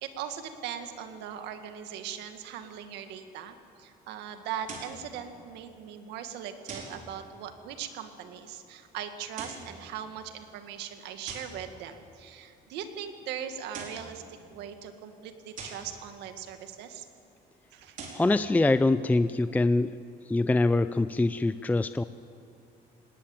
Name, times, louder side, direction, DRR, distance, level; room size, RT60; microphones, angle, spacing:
voice 1, 0.0-14.2 14.5-17.1 17.7-18.0, right 9 dB, 90° right, 7 dB, 1.9 m, -40 dB
sound 1, 4.6-5.0 6.7-7.0 9.2-9.7 11.3-11.6 13.5-14.1 15.6-15.9 17.8-18.3, right 4 dB, 50° right, 5.0 m, -42 dB
voice 2, 18.1-20.0 20.2-22.0, left 2 dB, 10° left, 13 dB, 0.5 m, -24 dB
20.0 x 18.0 x 8.7 m, 2.4 s
cardioid pair, 110°, 17 cm